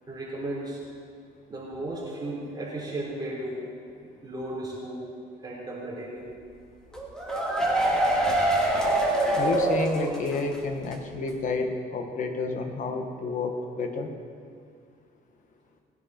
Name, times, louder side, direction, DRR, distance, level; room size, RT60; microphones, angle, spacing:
voice 1, 0.1-0.8 1.5-3.6 4.0-5.1 5.4-6.3, right 1 dB, 25° right, -5 dB, 4.2 m, -35 dB
sound 1, 6.9-10.6 10.9-11.0 11.3-11.4, right 1 dB, 5° left, 2.6 m, -24 dB
voice 2, 9.3-14.1, left 3 dB, 50° left, 4 dB, 1.7 m, -30 dB
20.0 x 10.5 x 4.5 m, 2.2 s
cardioid pair, 110°, 17 cm